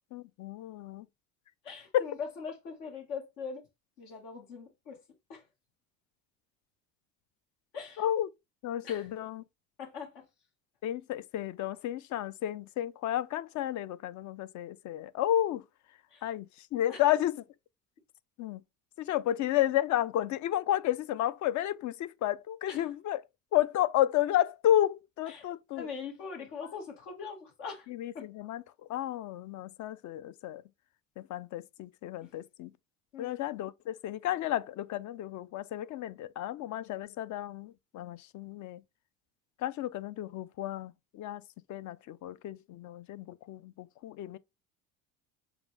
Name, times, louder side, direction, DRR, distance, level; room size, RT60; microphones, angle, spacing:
voice 1, 0.1-1.1 1.9-2.1 8.0-8.3 8.6-9.4 10.8-15.6 16.2-16.5 16.7-17.4 18.4-18.6 19.0-23.2 23.5-25.9 27.9-28.6 28.9-30.6 31.2-32.7 33.2-38.8 39.6-41.4 41.7-44.4, left 12 dB, 45° left, 0.5 m, -32 dB
voice 2, 1.6-3.6 4.0-5.0 5.3-5.5 7.7-8.0 8.8-9.1 9.8-10.3 16.1-16.3 16.9-17.0 22.7-22.9 25.3-27.9 28.1-28.3 32.2-32.3 33.1-33.4, left 5 dB, 75° left, 1.8 m, -42 dB
6.9 x 2.3 x 3.3 m
hypercardioid pair, 75°, 41 cm